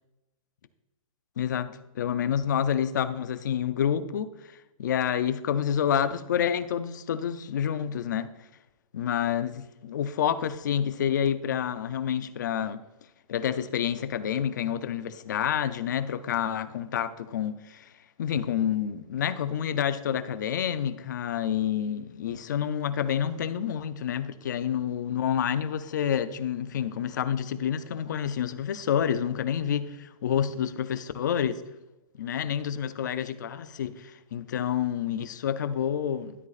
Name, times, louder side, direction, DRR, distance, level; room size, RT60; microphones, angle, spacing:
voice 1, 1.4-4.5 4.8-8.3 8.9-12.8 13.3-17.5 18.2-31.6 32.2-36.5, left 9 dB, 30° left, 0.4 m, -28 dB
12.5 x 8.1 x 2.4 m
hypercardioid pair, 170°, 18 cm